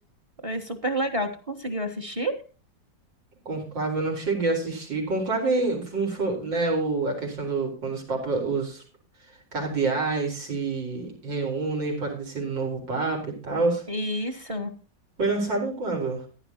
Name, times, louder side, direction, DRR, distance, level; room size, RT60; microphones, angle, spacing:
voice 1, 0.4-2.3 13.9-14.7, right 1 dB, 20° right, 8 dB, 1.1 m, -29 dB
voice 2, 3.5-8.8 9.5-13.8 15.2-16.2, right 3 dB, 85° right, 0 dB, 5.1 m, -27 dB
15.0 x 11.5 x 2.9 m, 0.37 s
omnidirectional pair, 2.0 m